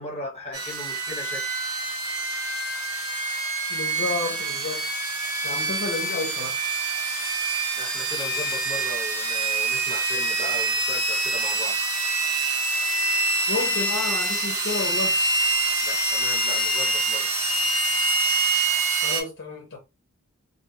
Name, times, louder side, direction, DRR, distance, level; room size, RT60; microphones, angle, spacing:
voice 1, 0.0-1.4 7.7-11.8 15.8-17.3, left 2 dB, 30° left, 1.2 m, -37 dB
sound 1, 0.5-19.2, right 2 dB, 85° right, 1.1 m, -25 dB
voice 2, 3.7-4.9 5.4-6.6 13.5-15.2 19.0-19.8, left 3 dB, 55° left, 0.6 m, -31 dB
2.6 x 2.3 x 2.8 m
head